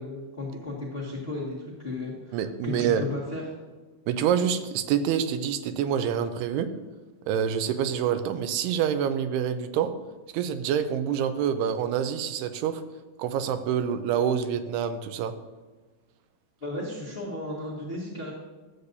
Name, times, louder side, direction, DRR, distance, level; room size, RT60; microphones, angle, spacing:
voice 1, 0.0-3.4 16.6-18.3, left 2 dB, 50° left, -7 dB, 0.7 m, -34 dB
voice 2, 2.3-3.0 4.1-6.7 7.3-9.9 10.3-12.8 13.2-15.3, right 8 dB, 85° right, 9 dB, 2.6 m, -26 dB
13.0 x 8.1 x 2.7 m, 1.3 s
omnidirectional pair, 4.6 m